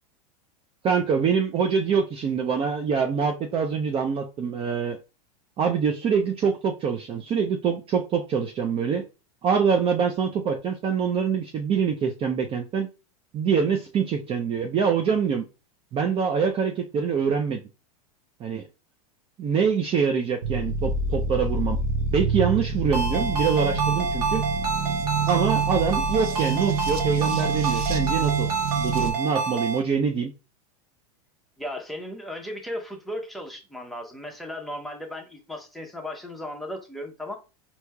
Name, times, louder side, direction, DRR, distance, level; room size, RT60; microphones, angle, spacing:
voice 1, 0.8-5.0 5.6-9.0 9.4-12.9 13.3-15.4 15.9-17.6 18.4-18.6 19.4-21.8 22.1-24.4 25.3-28.5 28.8-30.3, right 6 dB, 30° right, 0.5 m, -25 dB
sound 1, 20.4-29.1, right 4 dB, 70° right, 0.7 m, -27 dB
Ringtone, 22.9-29.8, right 4 dB, 90° right, 1.4 m, -28 dB
voice 2, 31.6-37.4, left 1 dB, ahead, 0.9 m, -36 dB
4.4 x 2.8 x 2.2 m
hypercardioid pair, 105°, 20 cm